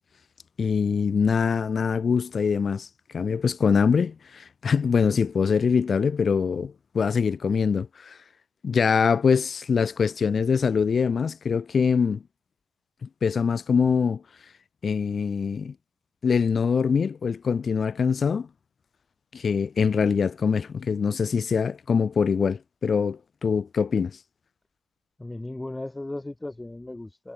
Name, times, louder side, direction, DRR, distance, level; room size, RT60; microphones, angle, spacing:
voice 1, 0.6-2.9 3.1-8.2 8.6-12.2 13.0-14.2 14.8-15.7 16.2-18.5 19.3-24.1, left 6 dB, 45° left, 1.3 m, -23 dB
voice 2, 25.2-27.3, left 2 dB, 15° left, 6.1 m, -36 dB
cardioid pair, 90°, 0 cm